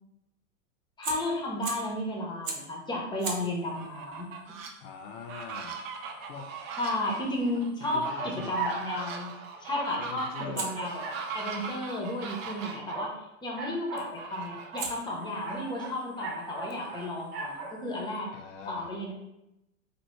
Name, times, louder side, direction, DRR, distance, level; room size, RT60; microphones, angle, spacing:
Fire, 0.9-2.0 2.4-2.8 3.2-8.1 10.5-12.7 14.0-14.3 14.8-18.2, right 4 dB, 30° right, 0.6 m, -43 dB
voice 1, 1.0-4.3 6.8-9.3 9.6-11.0 11.3-18.3 18.7-19.1, left 1 dB, 10° left, -1 dB, 0.6 m, -33 dB
Fowl, 3.6-4.7 5.2-12.9 13.9-15.0 15.4-15.5 15.9-17.6, right 5 dB, 80° right, 0.7 m, -41 dB
voice 2, 4.8-5.8 6.3-6.5 7.9-8.6 10.0-10.8 18.3-18.9, left 5 dB, 65° left, 1 dB, 0.5 m, -42 dB
sound 1, 8.1-9.2 9.7-9.9 10.4-11.2 12.3-13.1 13.5-14.1 14.9-17.0 17.3-17.7, right 4 dB, 50° right, 0.9 m, -38 dB
2.8 x 2.6 x 3.0 m, 0.86 s
hypercardioid pair, 120°, 39 cm